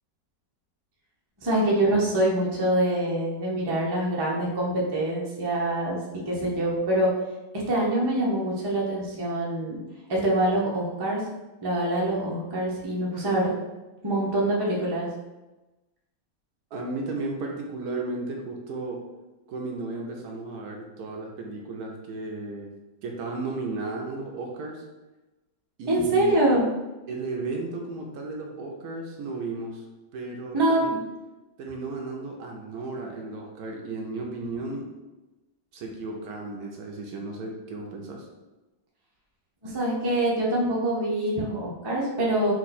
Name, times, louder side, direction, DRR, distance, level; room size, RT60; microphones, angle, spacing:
voice 1, 1.4-6.0 6.3-7.1 7.5-9.8 10.1-11.2 11.6-13.5 14.0-15.1 25.9-26.7 30.5-31.0 39.6-42.5, right 1 dB, 25° right, -4 dB, 0.5 m, -25 dB
voice 2, 16.7-19.0 19.5-22.7 23.0-24.8 25.8-26.5 27.1-29.8 30.1-31.0 31.6-34.9 35.7-38.3, right 2 dB, 70° right, 1 dB, 1.1 m, -34 dB
4.6 x 2.6 x 4.1 m, 1.1 s
omnidirectional pair, 1.8 m